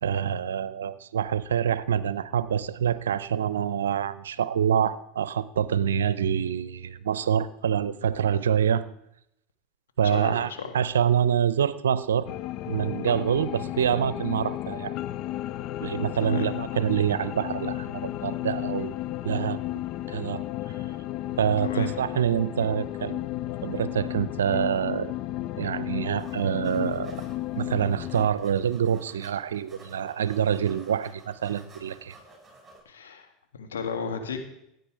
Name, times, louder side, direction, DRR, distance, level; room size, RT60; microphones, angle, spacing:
voice 1, 0.0-8.8 10.0-12.3 12.7-14.9 15.8-18.9 19.2-19.6 20.1-20.4 21.4-23.2 23.6-25.1 25.6-27.2 27.5-32.1, right 8 dB, 85° right, 17 dB, 0.6 m, -26 dB
voice 2, 10.0-10.7 16.2-16.5 21.6-21.9 32.9-34.4, left 6 dB, 85° left, 5 dB, 1.9 m, -34 dB
sound 1, 12.3-28.3, left 14 dB, 55° left, 0.5 m, -33 dB
sound 2, 26.2-26.4 26.6-29.3 29.5-32.8, right 2 dB, 15° right, 6.2 m, -52 dB
16.0 x 9.4 x 4.8 m, 0.79 s
hypercardioid pair, 90°, 0 cm